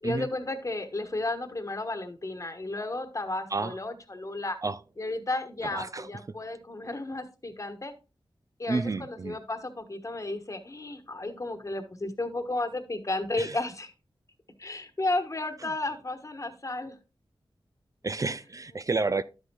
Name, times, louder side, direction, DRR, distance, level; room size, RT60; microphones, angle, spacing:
voice 1, 0.0-4.6 5.0-7.9 8.6-13.9 14.6-17.0, left 2 dB, 35° left, 1.2 m, -33 dB
voice 2, 5.7-6.1 8.7-9.4 13.4-13.6 18.0-19.2, right 3 dB, 40° right, 0.4 m, -30 dB
11.5 x 8.0 x 2.3 m
wide cardioid pair, 95°, 9 cm